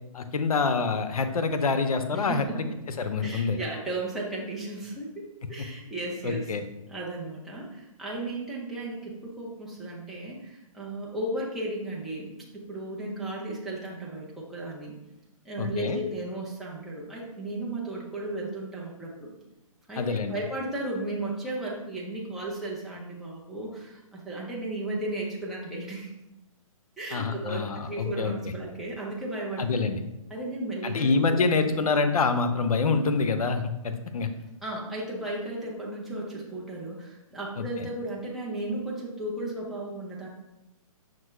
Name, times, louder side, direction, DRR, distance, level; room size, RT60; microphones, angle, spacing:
voice 1, 0.1-2.6 3.0-3.6 6.2-6.6 15.6-16.0 20.0-20.4 27.1-28.5 29.6-30.1 30.8-34.3 37.6-37.9, left 4 dB, 90° left, 8 dB, 0.5 m, -26 dB
voice 2, 2.1-2.6 3.2-6.4 6.9-15.0 15.4-19.3 19.9-26.1 27.0-29.7 30.3-31.9 34.6-40.3, right 2 dB, ahead, -5 dB, 0.5 m, -35 dB
5.8 x 2.1 x 3.1 m, 0.94 s
hypercardioid pair, 145°, 18 cm